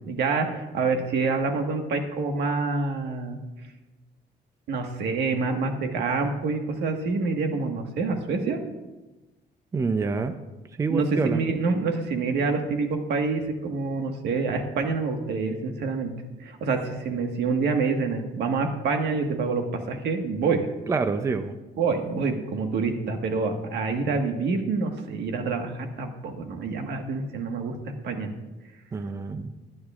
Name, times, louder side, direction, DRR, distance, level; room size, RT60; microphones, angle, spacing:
voice 1, 0.0-3.4 4.7-8.6 10.9-16.1 16.4-20.6 21.8-27.8 28.0-28.3, right 4 dB, 85° right, 4 dB, 1.5 m, -27 dB
voice 2, 9.7-10.4 10.8-11.4 20.9-21.5 28.9-29.5, right 4 dB, 20° right, 9 dB, 0.5 m, -27 dB
22.0 x 9.5 x 2.4 m, 1.1 s
cardioid pair, 170°, 17 cm